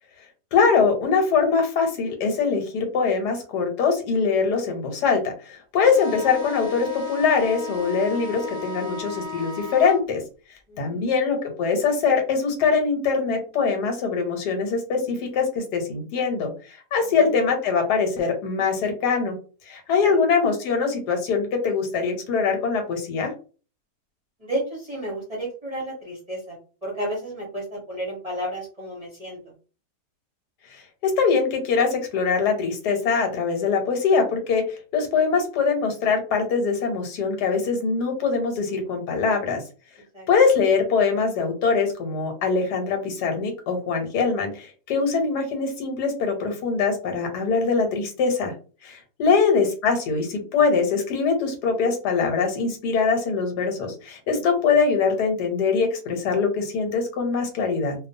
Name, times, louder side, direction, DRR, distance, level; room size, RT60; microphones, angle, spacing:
voice 1, 0.5-10.2 10.8-19.4 19.7-23.3 31.0-34.6 34.9-39.6 40.3-48.5 48.8-58.0, left 5 dB, 85° left, 4 dB, 1.3 m, -23 dB
sound 1, 5.9-10.0, left 4 dB, 55° left, 0.4 m, -35 dB
voice 2, 10.7-11.1 17.0-17.4 20.0-20.2 24.4-26.6 26.8-29.4 40.1-40.3 49.3-49.4, right 1 dB, 30° right, -4 dB, 0.7 m, -32 dB
2.5 x 2.3 x 2.6 m, 0.36 s
omnidirectional pair, 1.7 m